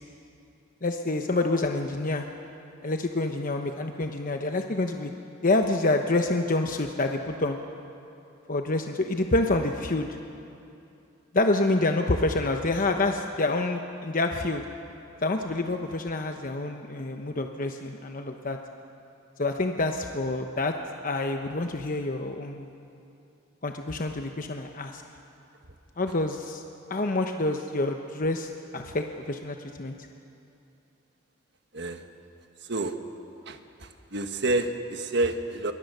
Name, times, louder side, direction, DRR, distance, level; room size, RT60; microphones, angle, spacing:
voice 1, 0.8-2.3 2.8-5.1 5.4-7.6 8.5-10.2 11.3-14.6 15.2-18.6 19.4-20.7 21.0-22.7 23.6-25.0 26.0-26.6 26.9-30.0, left 2 dB, 45° left, 4 dB, 1.0 m, -27 dB
voice 2, 34.1-35.7, right 2 dB, 60° right, 6 dB, 1.5 m, -28 dB
27.0 x 23.0 x 6.7 m, 2.7 s
head